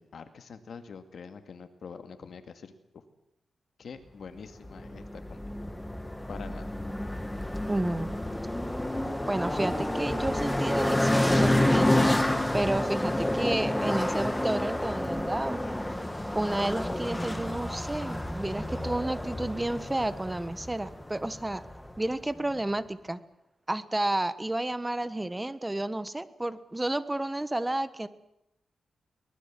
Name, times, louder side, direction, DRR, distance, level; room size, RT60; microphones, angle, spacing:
voice 1, 0.0-3.0 3.8-5.7 6.3-6.7, left 5 dB, 70° left, 9 dB, 2.3 m, -45 dB
sound 1, 4.6-22.1, left 1 dB, 10° left, 2.0 m, -29 dB
voice 2, 7.7-8.1 9.3-11.9 12.5-15.6 16.3-21.6 22.0-23.2 23.7-28.1, right 1 dB, 15° right, 14 dB, 1.3 m, -31 dB
23.0 x 20.0 x 7.6 m, 0.82 s
cardioid pair, 80°, 0 cm